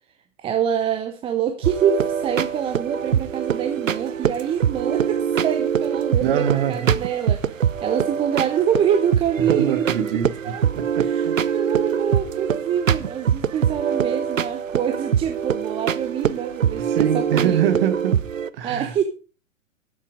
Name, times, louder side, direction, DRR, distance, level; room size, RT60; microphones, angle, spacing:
voice 1, 0.4-10.6 11.0-17.6 18.6-19.0, right 8 dB, 15° right, 0.7 m, -26 dB
sound 1, 1.6-18.5, right 8 dB, 70° right, 0.8 m, -24 dB
voice 2, 6.2-6.9 9.5-10.3 10.7-11.4 16.8-18.2 18.6-19.0, right 9 dB, 45° right, 1.6 m, -24 dB
12.5 x 7.4 x 4.9 m
figure-of-eight pair, 110°, 40 cm